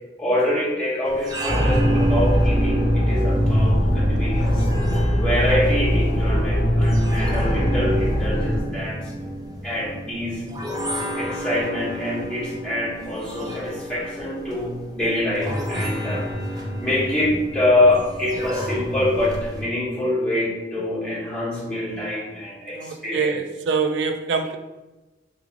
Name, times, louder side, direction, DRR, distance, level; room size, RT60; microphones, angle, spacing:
voice 1, 0.2-4.6 5.2-9.0 9.6-10.4 11.1-16.3 16.8-23.3, left 1 dB, 5° left, -8 dB, 1.0 m, -25 dB
sound 1, 1.1-19.6, equal, 20° right, 0.4 m, -31 dB
sound 2, 1.5-8.6, equal, 75° left, 0.6 m, -20 dB
voice 2, 22.7-24.6, right 5 dB, 85° right, 6 dB, 0.3 m, -24 dB
3.6 x 3.2 x 2.4 m, 1.1 s
head